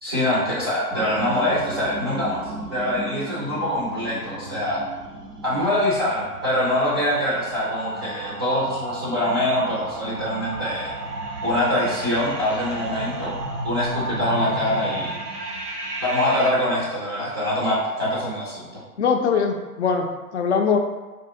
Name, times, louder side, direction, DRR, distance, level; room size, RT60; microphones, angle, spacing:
voice 1, 0.0-2.4 2.7-4.8 5.4-10.9 11.4-13.3 13.6-15.2 16.0-18.8, left 1 dB, 20° right, -8 dB, 0.4 m, -24 dB
sound 1, 0.9-16.5, right 2 dB, 80° right, 0.7 m, -33 dB
voice 2, 19.0-20.8, left 6 dB, 50° left, 4 dB, 0.5 m, -22 dB
4.5 x 2.5 x 2.6 m, 1.2 s
figure-of-eight pair, 110°, 46 cm